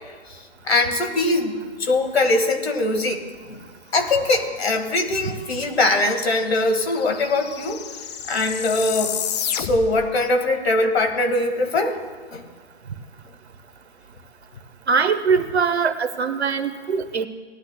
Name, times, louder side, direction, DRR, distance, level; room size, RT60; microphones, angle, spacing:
voice 1, 0.3-3.6 3.9-7.8 8.3-9.2 9.5-12.0 12.3-12.4, left 2 dB, 65° left, 6 dB, 1.8 m, -22 dB
sound 1, 5.6-5.7 5.8-10.1, left 9 dB, 40° left, 0.6 m, -31 dB
voice 2, 14.9-17.3, right 5 dB, 75° right, 11 dB, 1.0 m, -22 dB
18.5 x 12.0 x 2.2 m, 1.4 s
figure-of-eight pair, 125°, 33 cm